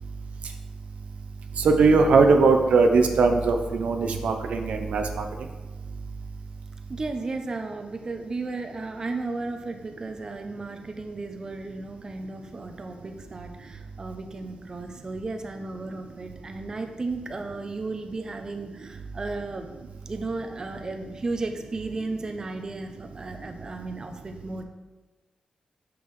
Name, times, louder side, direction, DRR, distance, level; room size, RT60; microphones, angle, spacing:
voice 1, 1.6-5.2, right 4 dB, 80° right, 5 dB, 0.5 m, -20 dB
voice 2, 6.9-19.7 20.1-24.6, right 3 dB, 30° right, 5 dB, 0.5 m, -34 dB
6.0 x 5.4 x 3.1 m, 1.2 s
cardioid pair, 100°, 2 cm